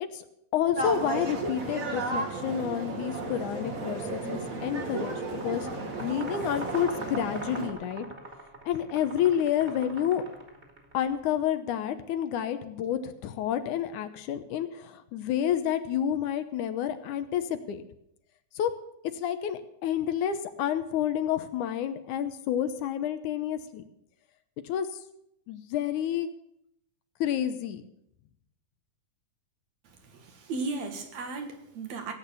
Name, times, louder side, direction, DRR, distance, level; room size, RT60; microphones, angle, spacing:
voice 1, 0.5-8.1 8.7-10.2 10.9-17.8 18.6-18.7 19.1-23.8 24.6-24.9 25.5-26.3 27.2-27.8, left 10 dB, 75° left, 9 dB, 2.3 m, -29 dB
sound 1, 0.8-7.7, right 3 dB, 35° right, 1.5 m, -34 dB
sound 2, 5.2-10.9, right 2 dB, 20° right, 2.5 m, -42 dB
voice 2, 29.8-32.1, right 3 dB, 60° right, 5 dB, 2.8 m, -36 dB
17.0 x 8.7 x 7.0 m, 0.79 s
omnidirectional pair, 3.6 m